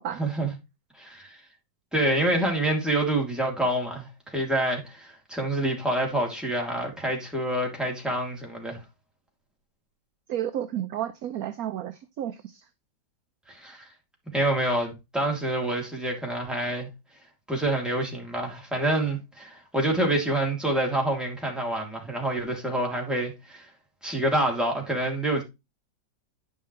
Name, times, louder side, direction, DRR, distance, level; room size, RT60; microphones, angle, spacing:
voice 1, 0.2-0.5 1.0-1.4 1.9-8.8 13.5-13.9 14.3-16.9 17.5-23.6 24.0-25.4, right 1 dB, ahead, 2.8 m, -27 dB
voice 2, 10.3-12.6, right 11 dB, 70° right, 0.9 m, -32 dB
10.5 x 5.6 x 3.1 m
omnidirectional pair, 2.0 m